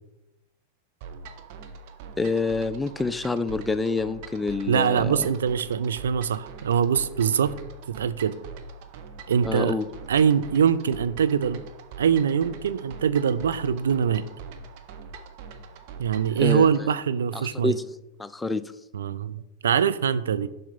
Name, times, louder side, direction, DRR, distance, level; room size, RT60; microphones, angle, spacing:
sound 1, 1.0-16.9, right 5 dB, 45° right, 0.9 m, -43 dB
voice 1, 2.2-5.3 9.4-9.9 16.4-16.7 17.3-17.8 18.2-18.7, left 3 dB, 10° left, 13 dB, 0.4 m, -27 dB
voice 2, 4.7-7.5 7.9-8.3 9.3-9.8 10.1-11.6 12.0-14.2 16.0-17.8 18.9-20.5, right 7 dB, 65° right, 12 dB, 0.4 m, -23 dB
7.5 x 5.5 x 5.4 m, 0.91 s
figure-of-eight pair, 90°, 0 cm